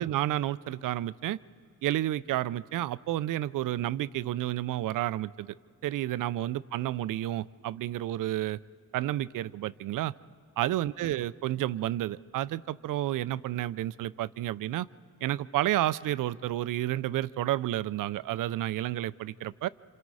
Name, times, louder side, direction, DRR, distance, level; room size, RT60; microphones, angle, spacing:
voice 1, 0.0-1.4 1.8-5.5 5.8-8.6 8.9-10.1 10.6-14.9 15.2-19.7, right 14 dB, 75° right, 17 dB, 0.5 m, -30 dB
28.5 x 27.0 x 4.8 m, 2.4 s
wide cardioid pair, 155°, 32 cm